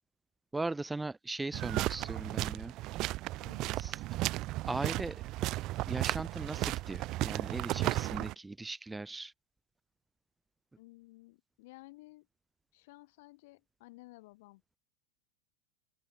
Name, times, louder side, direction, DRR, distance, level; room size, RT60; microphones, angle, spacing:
voice 1, 0.5-2.7 3.8-4.0 4.7-5.2 5.9-9.3, right 2 dB, 10° right, 1.3 m, -38 dB
sound 1, 1.5-8.3, right 18 dB, 35° right, 0.8 m, -34 dB
voice 2, 3.4-3.8 10.8-12.3 12.7-14.8, left 22 dB, 50° left, 2.2 m, -55 dB
open air
figure-of-eight pair, 90°, 0 cm